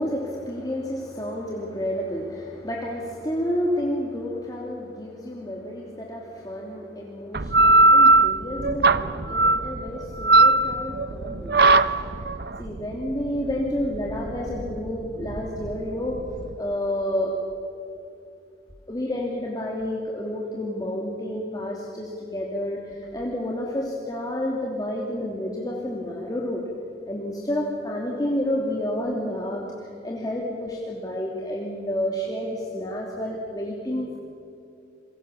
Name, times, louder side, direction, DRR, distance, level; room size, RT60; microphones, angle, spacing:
voice 1, 0.0-12.3 12.6-16.2 16.6-17.3 18.9-26.6 27.1-34.2, left 1 dB, 20° left, -2 dB, 2.7 m, -30 dB
sound 1, 7.3-16.5, right 2 dB, 65° right, 0.9 m, -19 dB
28.0 x 23.5 x 7.1 m, 2.5 s
head